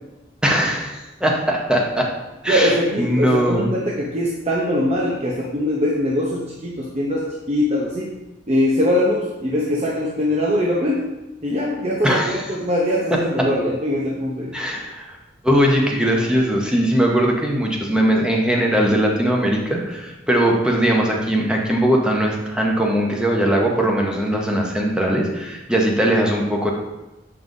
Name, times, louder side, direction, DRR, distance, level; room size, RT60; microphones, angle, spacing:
voice 1, 0.4-2.1 2.4-3.7 12.0-12.4 13.1-13.5 14.5-15.0 15.4-26.7, right 1 dB, 5° right, -1 dB, 0.9 m, -20 dB
voice 2, 2.5-8.2 8.5-11.1 11.4-14.6, left 1 dB, 35° right, -3 dB, 0.7 m, -22 dB
7.8 x 5.5 x 2.6 m, 1.0 s
head